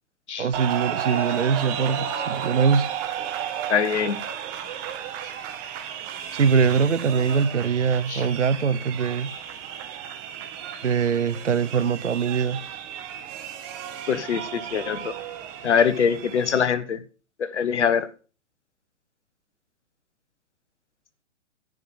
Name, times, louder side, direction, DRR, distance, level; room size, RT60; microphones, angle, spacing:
voice 1, 0.4-2.9 6.3-9.3 10.8-12.6, right 6 dB, 90° right, 0.8 m, -22 dB
sound 1, 0.5-16.6, right 9 dB, 35° right, 1.7 m, -33 dB
voice 2, 3.7-4.2 8.1-8.2 14.1-15.1 15.6-17.0 17.4-18.1, left 7 dB, 75° left, 1.3 m, -23 dB
11.0 x 9.2 x 5.6 m
figure-of-eight pair, 115°, 35 cm